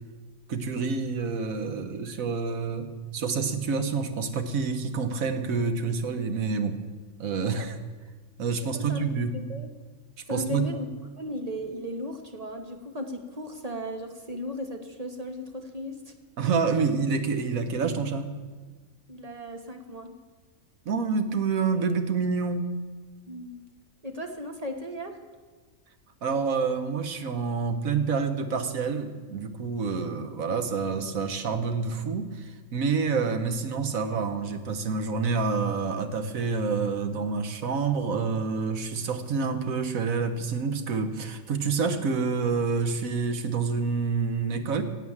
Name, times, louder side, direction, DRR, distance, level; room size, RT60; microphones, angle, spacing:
voice 1, 0.5-2.9 3.1-6.8 7.2-7.8 8.4-9.3 10.3-10.6 16.4-18.3 20.8-22.7 26.2-44.8, right 5 dB, 70° right, 9 dB, 1.5 m, -28 dB
voice 2, 8.6-9.7 10.3-10.9 11.2-16.1 19.1-20.1 23.3-23.6 24.0-25.2, left 1 dB, 30° right, 5 dB, 1.2 m, -36 dB
17.0 x 8.2 x 7.3 m, 1.4 s
omnidirectional pair, 1.5 m